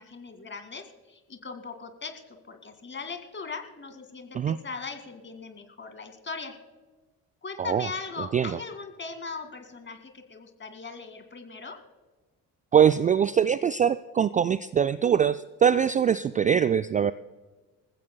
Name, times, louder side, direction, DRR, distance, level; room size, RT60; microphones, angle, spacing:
voice 1, 0.0-6.6 7.4-11.8, left 4 dB, 25° left, 7 dB, 2.1 m, -39 dB
voice 2, 7.6-7.9 8.2-8.6 12.7-17.1, right 8 dB, 20° right, 14 dB, 0.3 m, -23 dB
28.0 x 15.5 x 2.2 m, 1.3 s
figure-of-eight pair, 45°, 43 cm